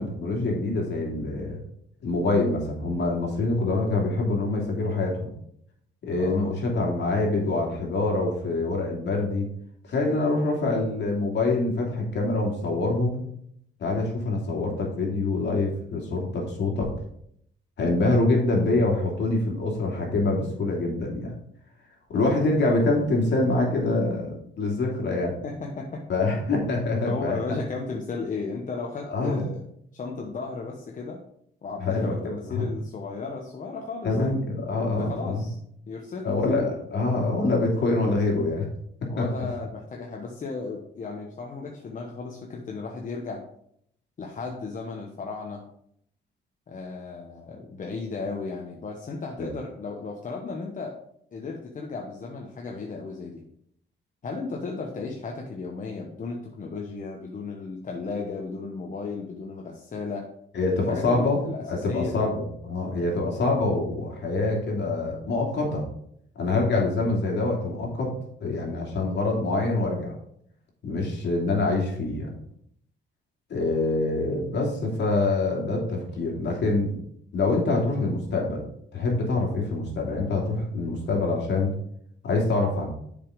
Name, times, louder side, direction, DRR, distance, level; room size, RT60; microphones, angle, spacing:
voice 1, 0.0-1.6 2.0-5.3 6.0-9.5 9.9-13.2 13.8-16.9 17.8-21.3 22.1-25.4 26.1-27.4 29.1-29.5 31.8-32.7 34.0-35.4 36.2-38.7 39.0-39.3 49.4-49.5 60.5-65.9 66.4-68.1 68.4-70.1 70.8-72.4 73.5-76.9 77.3-78.6 78.9-81.7 82.2-82.9, left 2 dB, 60° left, -1 dB, 2.7 m, -25 dB
voice 2, 6.2-6.5 25.4-26.0 27.1-29.6 29.9-31.2 31.6-34.4 35.0-35.6 35.9-36.8 39.1-43.4 44.2-45.6 46.7-51.0 51.3-53.4 54.2-60.3 60.7-62.2, left 4 dB, 40° left, 0 dB, 1.1 m, -35 dB
7.0 x 5.2 x 4.9 m, 0.70 s
cardioid pair, 90°, 20 cm